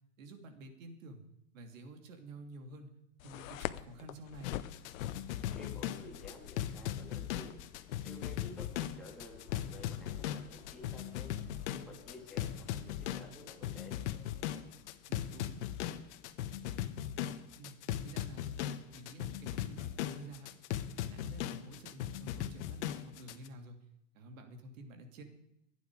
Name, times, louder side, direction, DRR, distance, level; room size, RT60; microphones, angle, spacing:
voice 1, 0.2-1.2 1.5-3.0 3.2-4.6 15.1-15.6 17.6-20.5 21.0-23.8 24.1-25.2, right 1 dB, 75° right, 6 dB, 3.0 m, -51 dB
sound 1, 3.2-16.7, left 14 dB, 80° left, 0.9 m, -49 dB
sound 2, 4.4-23.5, left 11 dB, 55° left, 1.2 m, -38 dB
voice 2, 5.6-7.6 8.0-11.3 11.7-14.0, left 2 dB, ahead, -3 dB, 2.9 m, -52 dB
Subway metro underground, 8.6-14.7, equal, 15° right, 4.4 m, -64 dB
23.0 x 9.4 x 4.8 m, 0.82 s
supercardioid pair, 155°, 40 cm